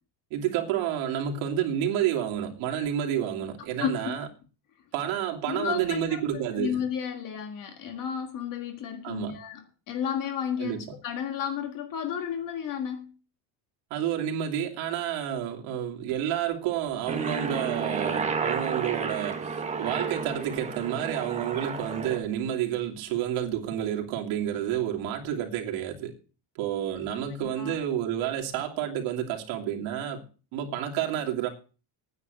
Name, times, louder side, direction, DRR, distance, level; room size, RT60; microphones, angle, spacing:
voice 1, 0.3-4.3 4.9-6.8 9.0-9.3 10.6-10.8 13.9-26.1 26.5-30.2 30.5-31.5, right 10 dB, 75° right, 3.0 m, -30 dB
voice 2, 3.8-4.2 5.5-13.1 27.1-27.8, left 8 dB, 40° left, 1.7 m, -33 dB
Aircraft, 17.1-22.2, right 5 dB, 15° right, 1.2 m, -31 dB
9.7 x 8.3 x 8.2 m
cardioid pair, 175°, 48 cm